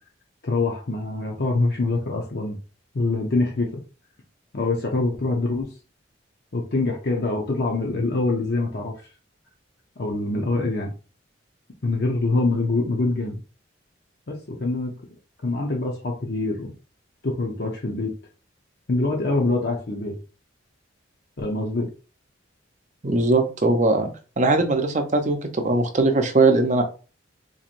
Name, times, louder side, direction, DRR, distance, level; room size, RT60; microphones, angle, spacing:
voice 1, 0.4-2.6 2.9-3.8 4.5-5.7 6.5-9.1 10.0-10.9 11.8-13.4 14.3-14.9 15.4-16.7 17.2-18.1 18.9-20.1 21.4-21.9, left 2 dB, 50° left, 0 dB, 0.7 m, -24 dB
voice 2, 23.0-24.1 24.4-26.8, right 2 dB, 35° right, 6 dB, 0.6 m, -20 dB
4.0 x 3.1 x 2.5 m, 0.35 s
head